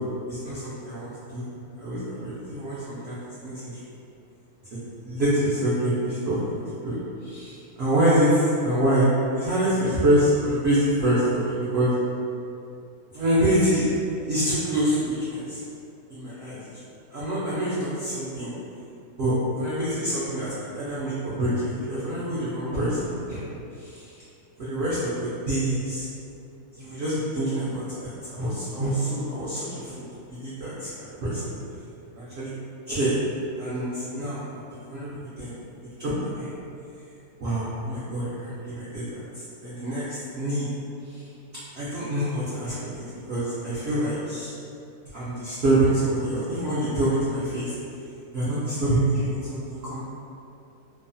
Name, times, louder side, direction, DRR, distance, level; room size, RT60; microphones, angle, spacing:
voice 1, 0.3-1.5 1.8-3.8 5.0-6.9 7.2-9.1 9.4-11.9 13.1-13.8 14.3-15.6 16.1-16.8 17.1-18.5 19.2-23.4 23.8-24.1 24.6-26.1 26.8-31.5 32.1-32.5 32.9-33.1 33.6-34.4 34.7-35.6 36.0-36.5 37.4-40.7 41.1-41.2 41.7-44.5 45.1-47.7 48.3-50.0, right 1 dB, 65° right, -10 dB, 0.6 m, -26 dB
3.0 x 2.0 x 2.6 m, 2.6 s
omnidirectional pair, 1.7 m